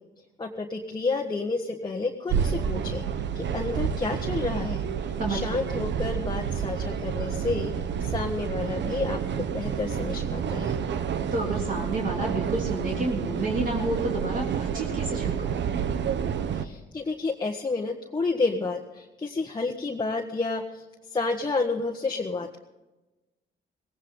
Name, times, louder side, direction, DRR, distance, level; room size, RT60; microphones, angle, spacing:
voice 1, 0.4-3.0 3.3-4.8 5.3-7.7 8.0-10.7 16.5-20.8 21.1-22.6, left 3 dB, 20° left, 0 dB, 1.5 m, -30 dB
sound 1, 2.3-16.7, right 7 dB, 65° right, 1.0 m, -29 dB
voice 2, 5.2-5.7 11.3-15.5, right 2 dB, 45° right, -2 dB, 3.5 m, -30 dB
18.0 x 16.0 x 3.9 m, 1.1 s
cardioid pair, 90°, 20 cm